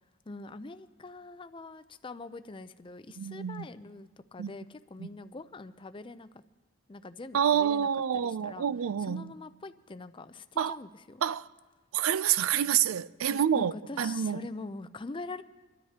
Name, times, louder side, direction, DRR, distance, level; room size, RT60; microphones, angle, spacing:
voice 1, 0.3-6.4 6.9-8.7 9.0-11.2 13.3-15.4, left 3 dB, 25° left, 0.4 m, -44 dB
voice 2, 3.2-3.7 4.4-4.5 5.0-5.1 7.3-9.3 10.6-10.8 11.2-11.5 11.9-14.4, right 9 dB, 85° right, 0.4 m, -28 dB
26.5 x 13.0 x 2.9 m
head